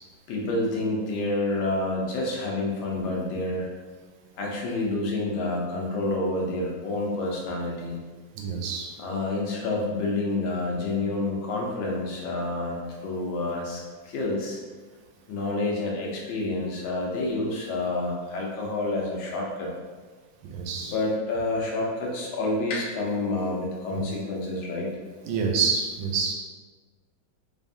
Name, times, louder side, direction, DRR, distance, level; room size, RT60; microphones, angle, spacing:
voice 1, 0.3-3.7 4.3-8.0 9.0-14.6 15.3-19.7 20.8-24.9, left 2 dB, 85° left, -2 dB, 1.5 m, -28 dB
voice 2, 8.4-8.9 20.5-20.9 23.9-24.0 25.2-26.3, right 5 dB, 90° right, 1 dB, 1.4 m, -27 dB
4.0 x 3.4 x 2.6 m, 1.4 s
omnidirectional pair, 2.1 m